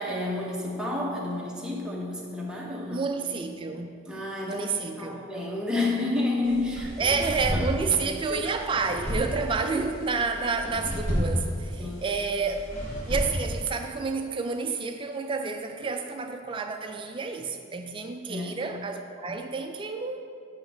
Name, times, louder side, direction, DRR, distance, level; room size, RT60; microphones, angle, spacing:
voice 1, 0.0-3.1 4.1-4.7 5.0-7.1 7.5-7.8 8.3-8.5 11.8-12.1 18.3-18.6, left 2 dB, 5° right, -3 dB, 0.9 m, -30 dB
voice 2, 2.9-3.9 4.5-5.2 7.0-12.7 13.1-20.2, right 4 dB, 25° right, 5 dB, 0.3 m, -29 dB
sound 1, 6.4-13.8, equal, 40° left, 1.5 m, -32 dB
9.0 x 3.2 x 5.7 m, 2.3 s
head